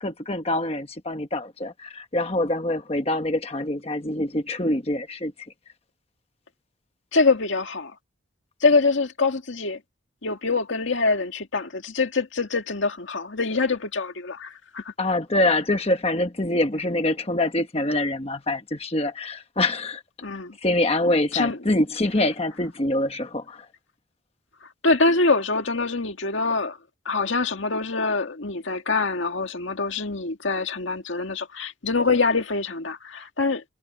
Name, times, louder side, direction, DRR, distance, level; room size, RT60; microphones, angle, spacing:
voice 1, 0.0-5.3 15.0-20.0 20.6-23.7, left 1 dB, 30° left, 1.1 m, -25 dB
voice 2, 7.1-7.9 8.6-9.8 10.2-14.9 20.2-20.6 21.3-21.6 24.8-26.8 27.1-33.6, left 3 dB, 75° left, 1.9 m, -24 dB
head